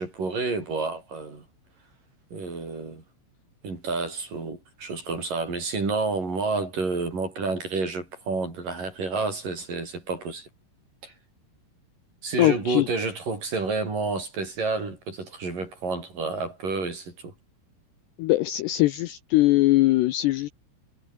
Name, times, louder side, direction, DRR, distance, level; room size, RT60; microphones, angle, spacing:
voice 1, 0.0-1.5 2.3-3.0 3.6-10.5 11.0-11.1 12.2-17.3, right 3 dB, 40° right, 8.7 m, -30 dB
voice 2, 12.4-12.9 18.2-20.5, left 17 dB, 85° left, 2.4 m, -21 dB
omnidirectional pair, 5.9 m